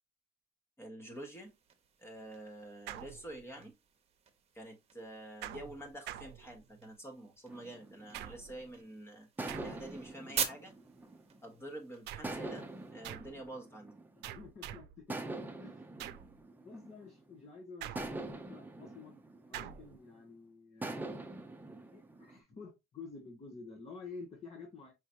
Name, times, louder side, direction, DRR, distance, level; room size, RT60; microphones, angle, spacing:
voice 1, 0.8-1.5 2.0-3.7 4.5-9.3 9.6-10.7 11.4-13.9, right 1 dB, 15° left, 1.3 m, -48 dB
sound 1, 1.1-12.9, right 7 dB, 40° right, 1.1 m, -46 dB
sound 2, 2.9-3.7 5.4-6.9 8.1-8.7 9.5-10.1 12.1-12.5 13.0-13.5 14.2-15.0 16.0-16.4 17.8-18.4 19.5-20.0, right 12 dB, 85° right, 0.5 m, -46 dB
sound 3, 7.5-8.8 9.4-11.6 12.2-14.4 15.1-17.4 18.0-20.2 20.8-22.4, right 2 dB, 10° right, 0.8 m, -44 dB
voice 2, 14.2-15.9 16.6-19.2 19.5-21.2 21.9-24.9, left 4 dB, 40° left, 1.4 m, -50 dB
5.7 x 3.1 x 2.7 m
cardioid pair, 110°, 17 cm